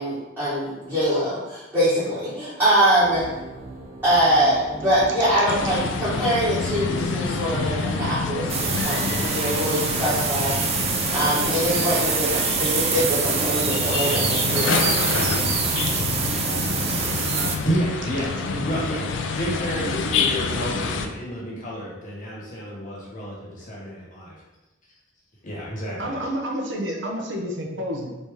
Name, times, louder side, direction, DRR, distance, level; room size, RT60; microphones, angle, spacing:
voice 1, 0.0-3.3 4.0-10.5 11.1-14.8, equal, 10° right, -14 dB, 1.1 m, -23 dB
sound 1, 3.0-8.8, right 2 dB, 90° right, 0.9 m, -39 dB
sound 2, 5.5-21.1, left 4 dB, 70° left, 0.3 m, -28 dB
sound 3, 8.5-17.6, right 5 dB, 30° right, 0.3 m, -25 dB
voice 2, 17.3-24.4 25.4-26.2, right 1 dB, 40° left, -5 dB, 1.0 m, -30 dB
voice 3, 26.0-28.1, equal, 65° right, 0 dB, 0.6 m, -29 dB
3.2 x 2.7 x 3.4 m, 1.1 s
head